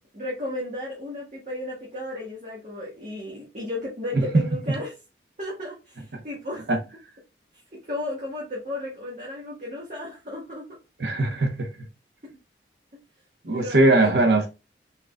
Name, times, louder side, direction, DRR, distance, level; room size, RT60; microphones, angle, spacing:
voice 1, 0.1-4.9 5.4-6.6 7.8-10.6 13.5-14.3, left 1 dB, 45° right, 1.5 m, -34 dB
voice 2, 11.0-11.7 13.4-14.5, right 2 dB, 70° right, 0.9 m, -20 dB
5.8 x 3.9 x 2.3 m
head